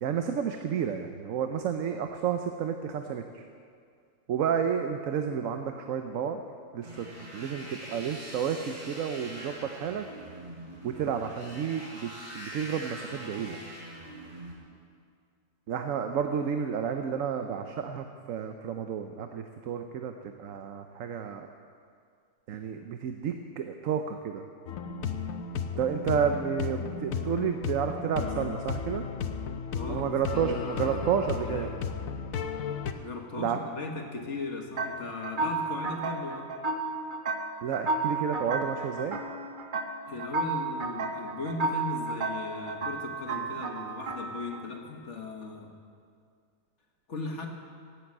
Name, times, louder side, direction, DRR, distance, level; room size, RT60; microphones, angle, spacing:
voice 1, 0.0-3.4 4.3-6.4 6.7-7.1 7.3-10.1 10.8-13.6 15.7-21.5 22.5-24.4 25.8-29.0 29.9-31.7 33.4-33.6 37.6-39.2, right 7 dB, 75° right, 6 dB, 1.1 m, -31 dB
sound 1, 6.8-14.5, right 1 dB, 25° right, 4.0 m, -44 dB
sound 2, 24.7-32.9, left 6 dB, 80° left, 1.2 m, -34 dB
voice 2, 29.7-31.2 31.4-31.8 33.0-36.5 40.1-45.7 47.1-47.5, left 3 dB, 60° left, 3 dB, 1.7 m, -38 dB
sound 3, 34.8-44.7, right 3 dB, 45° right, 0.9 m, -33 dB
17.0 x 8.0 x 8.5 m, 2.2 s
omnidirectional pair, 1.4 m